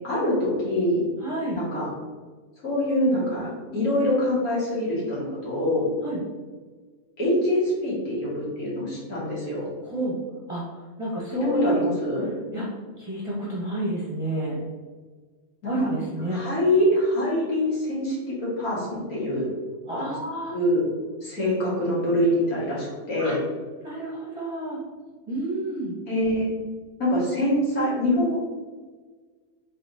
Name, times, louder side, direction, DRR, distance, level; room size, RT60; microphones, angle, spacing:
voice 1, 0.0-1.0 1.5-1.9 2.6-5.9 7.2-9.7 11.5-12.3 15.6-15.9 16.3-19.5 20.5-20.8 21.2-23.4 26.1-26.5 27.0-28.3, left 1 dB, 85° left, -7 dB, 2.1 m, -24 dB
voice 2, 1.2-1.6 6.0-6.2 9.8-10.1 10.5-11.8 12.5-12.7 13.0-14.6 15.6-16.4 19.9-20.5 23.2-23.4 23.8-24.8 25.3-26.0, right 1 dB, 25° right, -6 dB, 0.8 m, -29 dB
4.1 x 3.6 x 2.6 m, 1.4 s
omnidirectional pair, 1.5 m